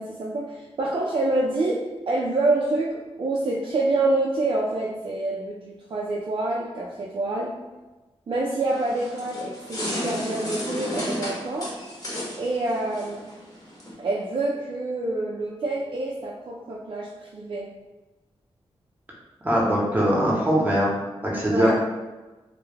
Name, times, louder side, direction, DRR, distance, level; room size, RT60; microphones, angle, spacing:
voice 1, 0.0-1.8 2.1-7.5 8.3-11.7 12.4-13.4 14.0-17.7 21.5-21.7, right 2 dB, 50° right, -4 dB, 0.3 m, -27 dB
sound 1, 8.7-13.9, left 1 dB, 35° left, 0.8 m, -33 dB
voice 2, 19.4-20.9 21.2-21.7, equal, 15° right, -4 dB, 0.7 m, -21 dB
2.2 x 2.0 x 3.2 m, 1.2 s
wide cardioid pair, 85°, 10 cm